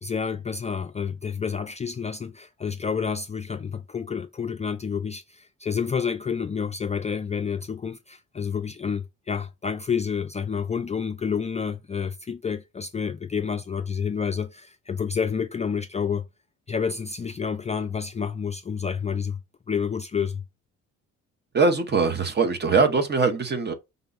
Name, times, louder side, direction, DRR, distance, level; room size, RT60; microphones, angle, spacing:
voice 1, 0.0-16.3 16.7-19.4 19.7-20.4, left 6 dB, 25° left, 0.3 m, -29 dB
voice 2, 21.5-23.7, right 4 dB, 35° right, 1.0 m, -22 dB
5.3 x 2.3 x 3.9 m
cardioid pair, 90°, 30 cm